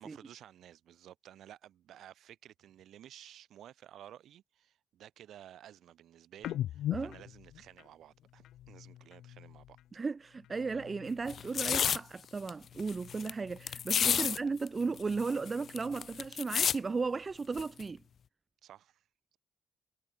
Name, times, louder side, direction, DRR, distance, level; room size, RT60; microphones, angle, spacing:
voice 1, 0.0-9.8 14.2-14.3 18.6-19.1, right 11 dB, 75° right, 4.0 m, -54 dB
sound 1, 6.4-10.0 10.3-12.1 12.4-14.3 14.6-16.5, left 12 dB, 80° left, 0.9 m, -44 dB
voice 2, 9.9-18.0, right 4 dB, 30° right, 0.5 m, -35 dB
sound 2, 11.3-12.0 12.5-12.6 12.8-13.3 13.7-14.4 14.7-14.8 15.0-16.8 17.6-17.8, left 7 dB, 55° left, 0.5 m, -30 dB
cardioid pair, 90°, 0 cm